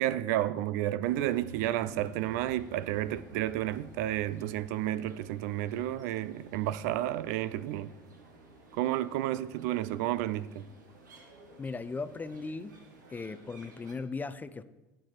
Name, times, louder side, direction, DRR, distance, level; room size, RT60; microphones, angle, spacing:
voice 1, 0.0-7.9 8.7-10.6, right 13 dB, 70° right, 0.4 m, -31 dB
sound 1, 1.0-13.9, right 3 dB, 90° right, 1.5 m, -53 dB
voice 2, 11.6-12.8 13.1-14.6, left 4 dB, 20° left, 0.5 m, -37 dB
9.4 x 6.1 x 4.4 m
hypercardioid pair, 80°, 10 cm